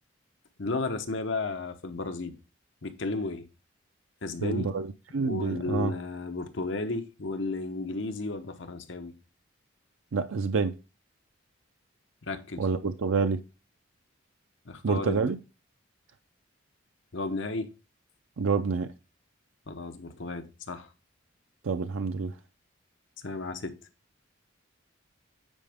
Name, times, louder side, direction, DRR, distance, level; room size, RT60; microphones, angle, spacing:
voice 1, 0.6-2.3 2.8-3.4 4.2-4.7 5.2-9.1 12.3-12.7 14.6-15.2 17.1-17.7 19.7-20.9 23.2-23.7, left 3 dB, 65° left, 0.9 m, -33 dB
voice 2, 4.4-6.0 10.1-10.7 12.6-13.4 14.8-15.4 18.4-18.9 21.6-22.3, right 4 dB, 80° right, 0.5 m, -28 dB
9.0 x 4.8 x 3.5 m
head